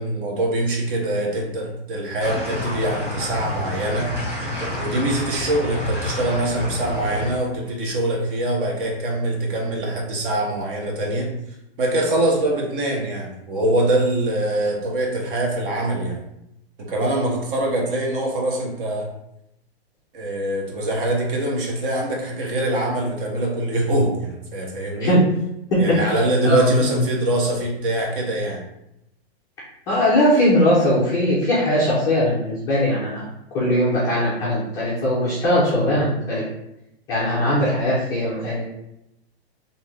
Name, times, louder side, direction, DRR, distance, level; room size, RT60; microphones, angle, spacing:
voice 1, 0.0-4.1 4.8-11.3 11.8-16.2 16.8-19.1 20.1-25.2 25.8-28.7 35.8-35.9, right 1 dB, 55° right, -1 dB, 1.2 m, -23 dB
sound 1, 2.2-7.3, left 1 dB, 5° right, 1.4 m, -29 dB
voice 2, 25.7-26.2 26.4-27.0 29.9-33.2 33.5-36.5 37.1-38.6, left 1 dB, 10° left, -7 dB, 0.3 m, -20 dB
3.5 x 2.7 x 3.1 m, 0.84 s
hypercardioid pair, 150°, 32 cm